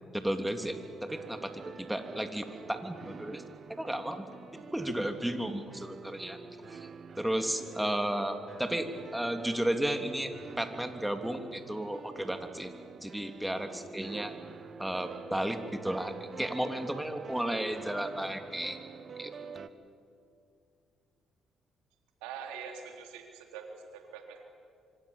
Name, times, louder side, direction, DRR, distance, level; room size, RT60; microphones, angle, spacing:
voice 1, 0.1-3.4 3.8-4.2 4.5-6.4 6.7-6.9 7.2-10.3 10.6-12.7 13.0-14.3 14.8-18.8 19.2-19.3, right 1 dB, 5° right, 6 dB, 3.1 m, -33 dB
sound 1, 0.6-19.7, right 5 dB, 50° right, 1.5 m, -47 dB
voice 2, 22.2-24.4, right 6 dB, 80° right, 3 dB, 3.6 m, -44 dB
27.0 x 25.5 x 7.3 m, 2.4 s
hypercardioid pair, 50°, 0 cm